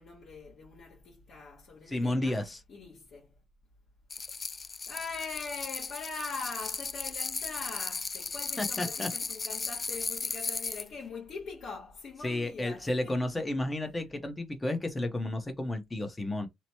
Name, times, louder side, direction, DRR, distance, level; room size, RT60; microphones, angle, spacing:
voice 1, 0.0-2.4 2.7-3.3 4.9-13.1, left 4 dB, 65° left, 1.2 m, -42 dB
voice 2, 1.9-2.6 8.6-9.1 12.2-16.5, left 1 dB, 20° left, 0.8 m, -32 dB
sound 1, 4.1-10.9, left 4 dB, 35° left, 0.3 m, -36 dB
2.9 x 2.1 x 2.8 m
cardioid pair, 90°, 0 cm